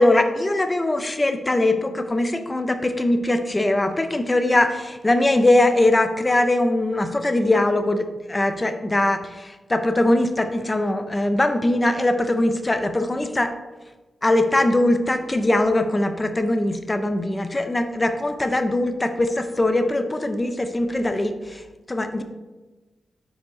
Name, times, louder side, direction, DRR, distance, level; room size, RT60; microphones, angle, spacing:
voice 1, 0.0-13.5 14.2-21.6 21.9-22.2, left 1 dB, 15° left, 8 dB, 0.5 m, -21 dB
6.3 x 4.9 x 3.9 m, 1.2 s
wide cardioid pair, 160°, 0 cm